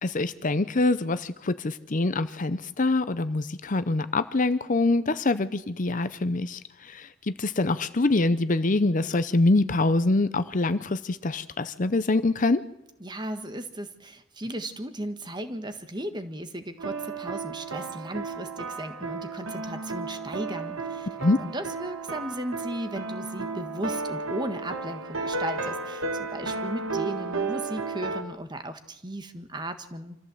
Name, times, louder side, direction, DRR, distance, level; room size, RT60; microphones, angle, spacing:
voice 1, 0.0-12.6 21.2-21.4, left 2 dB, 40° left, 13 dB, 0.7 m, -25 dB
voice 2, 13.0-21.1 21.4-30.2, right 1 dB, 20° right, 9 dB, 1.5 m, -36 dB
sound 1, 16.8-28.2, right 3 dB, 90° right, 2.0 m, -33 dB
25.5 x 14.5 x 7.8 m, 0.87 s
head